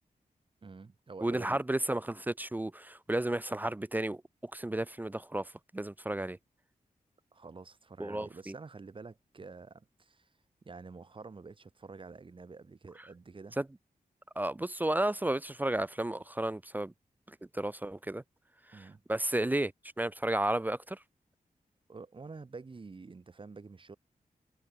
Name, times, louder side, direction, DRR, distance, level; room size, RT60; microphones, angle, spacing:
voice 1, 0.6-1.6 7.3-10.3 10.6-13.6 18.7-19.0 21.9-24.0, right 4 dB, 35° right, 2.7 m, -48 dB
voice 2, 1.2-6.4 8.0-8.5 13.6-13.7 14.4-16.9 17.3-18.2 18.7-19.7 20.0-21.0, right 1 dB, 10° right, 0.3 m, -33 dB
wide cardioid pair, 160°, 15 cm